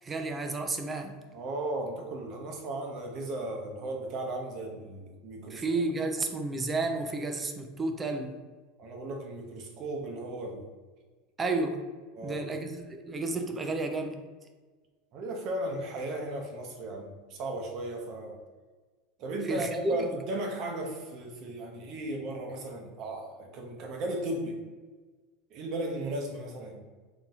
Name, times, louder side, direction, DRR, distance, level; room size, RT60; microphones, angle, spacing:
voice 1, 0.0-1.2 5.5-8.4 11.4-11.9 12.2-14.2 19.4-20.1, right 2 dB, 20° right, 6 dB, 0.4 m, -31 dB
voice 2, 1.3-5.6 8.8-10.7 12.1-12.4 15.1-18.4 19.2-24.6 25.5-26.8, right 1 dB, 50° right, 2 dB, 0.7 m, -36 dB
4.0 x 2.7 x 2.4 m, 1.4 s
supercardioid pair, 120°, 0 cm